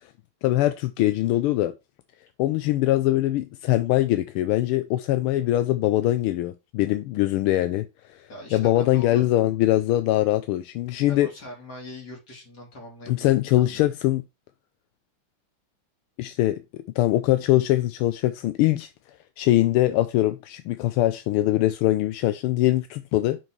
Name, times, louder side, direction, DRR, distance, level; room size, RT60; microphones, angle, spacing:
voice 1, 0.4-1.7 2.4-7.8 8.1-11.3 13.1-14.2 16.2-18.9 19.4-23.4, left 15 dB, 85° left, 1.5 m, -22 dB
voice 2, 8.3-9.3 11.1-13.8, left 1 dB, 45° left, 3.3 m, -42 dB
6.0 x 4.6 x 4.5 m
omnidirectional pair, 2.4 m